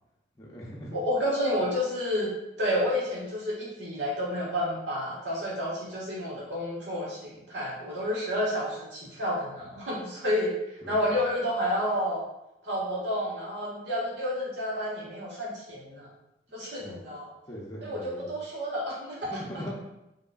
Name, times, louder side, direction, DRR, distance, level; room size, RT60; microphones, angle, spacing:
voice 1, 0.4-1.0 10.8-11.0 16.8-17.1 17.5-18.3 19.2-19.7, equal, 20° left, -5 dB, 0.6 m, -40 dB
voice 2, 0.9-2.3 2.6-10.5 10.9-12.2 12.6-16.1 16.5-17.3 17.8-19.3, equal, 85° right, -6 dB, 1.5 m, -30 dB
5.1 x 2.9 x 2.4 m, 0.90 s
head